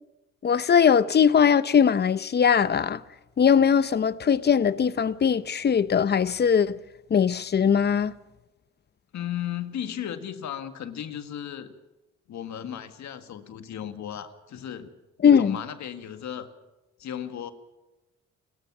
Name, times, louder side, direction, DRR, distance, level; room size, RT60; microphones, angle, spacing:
voice 1, 0.4-3.0 3.4-6.8 7.1-8.1 15.2-15.6, left 7 dB, 35° left, 0.7 m, -20 dB
voice 2, 9.1-11.7 12.3-14.9 15.2-16.5 17.0-17.5, left 10 dB, 65° left, 1.7 m, -35 dB
29.0 x 15.0 x 6.1 m
cardioid pair, 90°, 30 cm